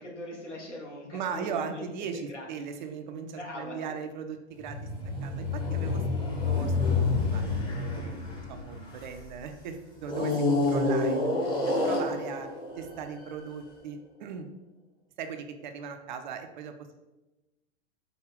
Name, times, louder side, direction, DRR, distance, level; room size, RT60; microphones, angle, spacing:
voice 1, 0.0-2.5 3.3-3.8 5.8-5.9 10.0-10.1 11.6-12.0, left 1 dB, 80° left, -2 dB, 1.1 m, -42 dB
voice 2, 1.1-4.8 5.2-8.2 8.5-12.5 12.8-14.5 15.2-16.9, right 6 dB, 45° right, 7 dB, 0.4 m, -38 dB
sound 1, 4.6-9.3 10.1-13.5, left 3 dB, 15° left, 0.7 m, -28 dB
4.7 x 2.3 x 3.3 m, 1.0 s
figure-of-eight pair, 100°, 35 cm